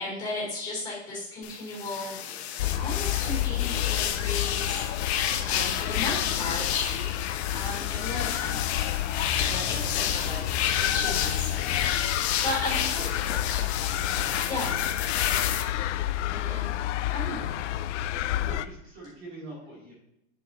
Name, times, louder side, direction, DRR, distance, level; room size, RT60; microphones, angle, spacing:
voice 1, 0.0-2.2 2.8-4.8 5.5-6.8 7.5-8.6 9.5-10.4 10.9-12.0 12.4-13.0 13.3-13.4 14.5-14.8 16.4-16.7 17.1-17.6, left 2 dB, 15° left, -6 dB, 3.6 m, -35 dB
sound 1, 1.4-15.6, left 10 dB, 65° left, 1.1 m, -31 dB
sound 2, 2.6-18.7, left 12 dB, 90° left, 0.6 m, -30 dB
voice 2, 9.8-10.1 10.4-10.5 12.6-13.6 14.1-14.4 16.3-16.6 18.2-19.9, right 1 dB, 35° right, -6 dB, 3.3 m, -44 dB
9.9 x 7.3 x 3.0 m, 0.82 s
supercardioid pair, 180°, 35 cm